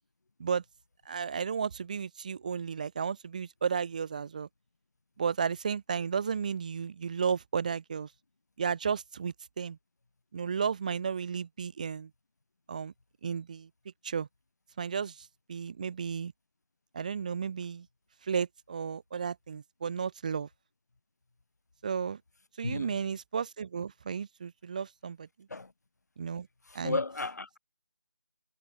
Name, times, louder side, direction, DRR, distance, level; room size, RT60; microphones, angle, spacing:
voice 1, 1.1-4.5 5.2-8.1 8.6-9.8 10.3-12.1 12.7-12.9 13.2-13.7 14.0-14.3 14.8-16.3 16.9-17.9 18.2-20.5 21.8-22.2 22.6-25.3 26.2-26.5 26.7-27.0, right 6 dB, 25° right, 0.8 m, -33 dB
voice 2, 22.6-23.0 25.5-25.7 26.7-27.6, left 3 dB, 60° left, 1.4 m, -34 dB
figure-of-eight pair, 160°, 10 cm